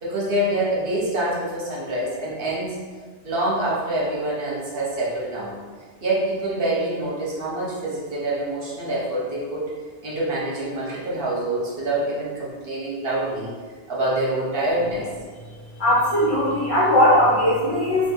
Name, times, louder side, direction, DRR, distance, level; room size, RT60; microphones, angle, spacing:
voice 1, 0.0-2.8 3.2-5.5 6.0-9.7 10.0-13.5 13.9-15.1, right 1 dB, 60° right, -6 dB, 1.1 m, -26 dB
voice 2, 15.8-18.1, left 1 dB, 85° left, -10 dB, 1.8 m, -19 dB
3.4 x 2.8 x 2.7 m, 1.5 s
omnidirectional pair, 1.1 m